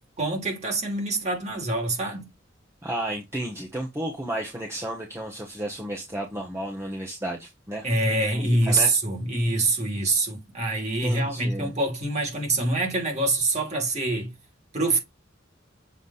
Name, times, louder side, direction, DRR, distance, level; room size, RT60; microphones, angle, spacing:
voice 1, 0.2-2.3 7.8-14.3 14.7-15.0, right 2 dB, 35° right, 3.0 m, -25 dB
voice 2, 2.8-7.8 8.3-8.9 11.0-11.7, right 1 dB, 15° right, 1.3 m, -33 dB
7.5 x 3.4 x 4.1 m
head